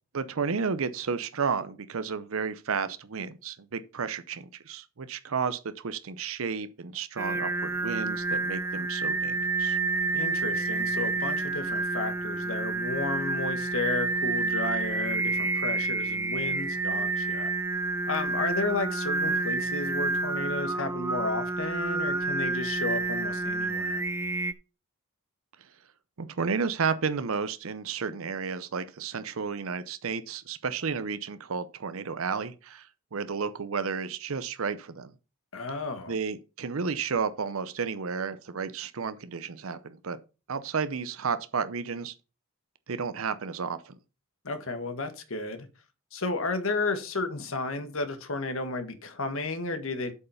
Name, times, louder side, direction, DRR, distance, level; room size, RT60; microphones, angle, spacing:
voice 1, 0.1-9.8 26.2-35.1 36.1-40.2 40.5-42.1 42.9-44.0, right 5 dB, 75° right, 0.6 m, -32 dB
Singing, 7.2-24.5, right 3 dB, 10° right, 0.4 m, -29 dB
voice 2, 10.1-17.5 18.1-24.0 35.5-36.1 44.4-45.7 46.1-50.1, left 3 dB, 70° left, 1.4 m, -33 dB
8.2 x 5.5 x 5.6 m
head